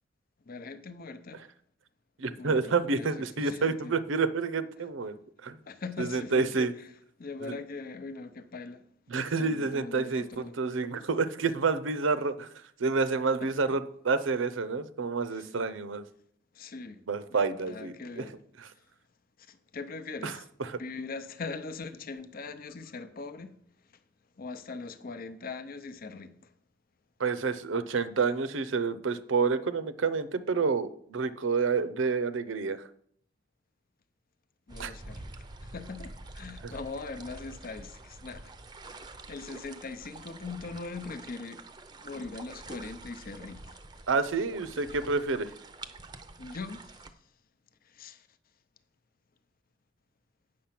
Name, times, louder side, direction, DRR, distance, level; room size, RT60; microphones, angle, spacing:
voice 1, 0.5-1.5 2.4-3.1 3.4-4.0 5.6-6.9 7.2-8.9 9.4-10.6 13.4-13.8 15.3-15.5 16.5-17.0 17.3-18.4 18.7-18.9 19.5-20.5 20.8-23.6 23.9-24.0 24.4-26.5 34.7-35.3 35.6-41.6 41.9-43.8 46.4-47.0 47.8-48.3, left 4 dB, 50° left, 0.6 m, -41 dB
voice 2, 2.2-5.6 6.0-6.7 7.4-7.5 9.1-16.0 17.1-18.3 18.6-18.7 20.2-20.8 27.2-32.9 34.8-34.9 36.6-36.7 44.1-45.5, right 4 dB, 85° right, 0.7 m, -29 dB
sound 1, 34.7-47.1, right 2 dB, 25° right, 0.6 m, -47 dB
8.5 x 6.4 x 5.9 m
head